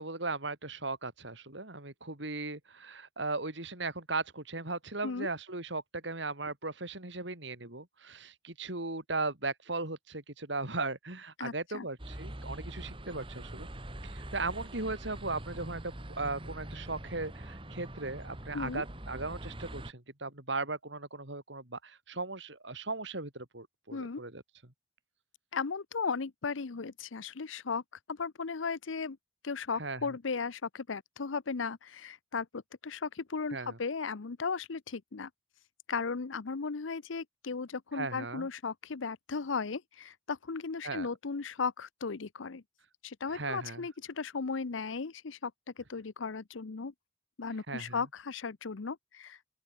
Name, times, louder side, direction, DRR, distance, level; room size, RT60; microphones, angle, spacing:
voice 1, 0.0-13.7 14.0-24.4 29.8-30.0 33.5-33.8 37.9-38.5 40.8-41.1 43.3-43.8 47.7-48.0, right 3 dB, 70° right, 3.9 m, -37 dB
voice 2, 11.4-11.9 18.5-18.8 23.9-24.2 25.5-27.8 28.1-29.2 29.4-35.3 35.9-42.6 43.0-45.5 45.8-46.9 47.4-49.4, left 5 dB, 90° left, 0.7 m, -36 dB
sound 1, 12.0-19.9, right 1 dB, 25° right, 2.4 m, -43 dB
open air
head